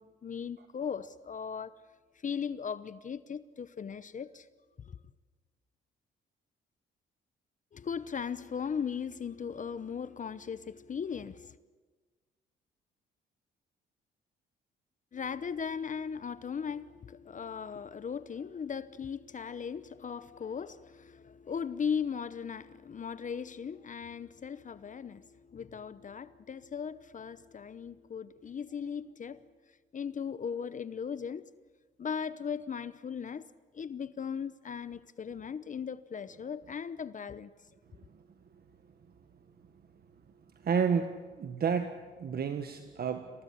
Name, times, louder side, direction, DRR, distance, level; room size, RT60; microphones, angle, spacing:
voice 1, 0.0-1.7 2.2-4.5 4.9-5.0 7.7-11.6 15.1-29.4 29.9-31.4 32.0-33.5 33.7-37.5, left 7 dB, 40° left, 0.9 m, -38 dB
voice 2, 40.6-43.3, right 6 dB, 50° right, 1.7 m, -31 dB
27.5 x 17.5 x 9.9 m
cardioid pair, 90°, 20 cm